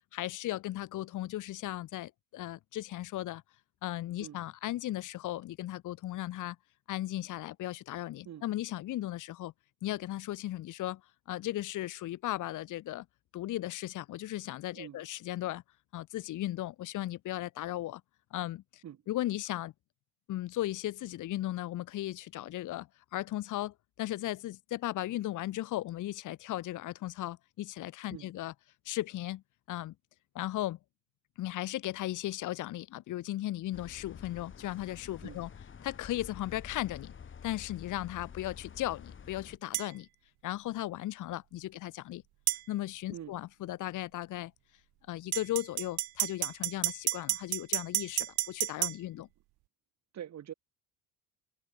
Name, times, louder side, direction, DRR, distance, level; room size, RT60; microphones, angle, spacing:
voice 1, 0.1-3.4 3.8-6.6 6.9-9.5 9.8-11.0 11.3-13.0 13.3-15.6 15.9-18.0 18.3-19.7 20.3-28.5 28.8-29.4 29.7-29.9 30.3-30.8 31.4-35.5 35.8-37.1 37.4-40.1 40.4-42.2 42.7-44.5 45.1-49.3, left 15 dB, 50° left, 1.0 m, -36 dB
sound 1, 33.7-39.6, left 7 dB, 30° left, 4.6 m, -48 dB
sound 2, 39.7-39.9 42.5-42.6 45.3-49.0, right 19 dB, 75° right, 1.8 m, -31 dB
voice 2, 50.1-50.5, right 10 dB, 45° right, 3.3 m, -44 dB
cardioid pair, 135°, 38 cm